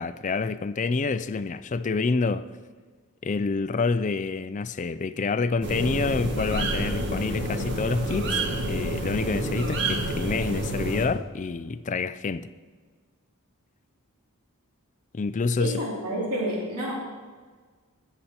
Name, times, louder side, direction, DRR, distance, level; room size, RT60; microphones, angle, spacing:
voice 1, 0.0-2.4 3.2-12.5 15.1-15.7, left 4 dB, 35° left, 12 dB, 0.4 m, -27 dB
sound 1, 5.6-11.1, right 1 dB, 50° right, 1.5 m, -28 dB
voice 2, 15.6-16.9, equal, 85° right, -3 dB, 2.5 m, -29 dB
19.0 x 7.0 x 4.3 m, 1.5 s
head